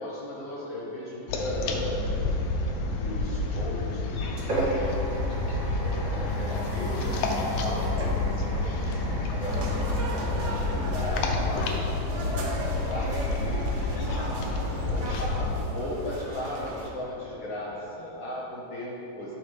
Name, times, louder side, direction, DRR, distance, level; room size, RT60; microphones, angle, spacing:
voice 1, 0.0-2.1 2.7-9.6 10.3-12.6 12.9-13.7 14.9-19.3, left 1 dB, 70° left, -6 dB, 1.4 m, -37 dB
sound 1, 1.3-15.5, left 2 dB, 85° left, 2.2 m, -29 dB
sound 2, 3.6-11.1, right 1 dB, 60° right, 1.0 m, -35 dB
sound 3, 9.4-16.9, right 1 dB, 80° right, 1.3 m, -36 dB
11.0 x 3.8 x 3.3 m, 3.0 s
omnidirectional pair, 3.9 m